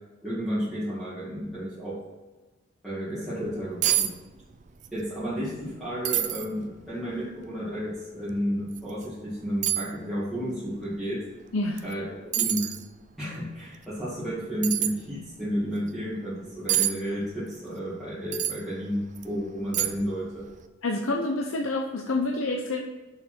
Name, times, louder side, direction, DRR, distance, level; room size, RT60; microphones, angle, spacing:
voice 1, 0.2-2.0 2.8-4.1 4.9-11.3 11.8-12.7 13.2-20.5, equal, ahead, -12 dB, 2.2 m, -32 dB
sound 1, 3.5-3.6 3.8-4.1 4.4-4.9 5.3-5.4 6.0-6.5 7.1-7.2 8.7-8.8 9.6-9.9 11.8-11.9 12.3-12.8 14.6-14.9 16.7-16.9 18.3-18.6 19.2-19.3 19.7-20.1 20.4-20.6, right 12 dB, 35° right, 0.5 m, -26 dB
voice 2, 20.8-22.8, left 2 dB, 75° left, 2 dB, 0.7 m, -27 dB
6.8 x 5.9 x 6.0 m, 1.2 s
head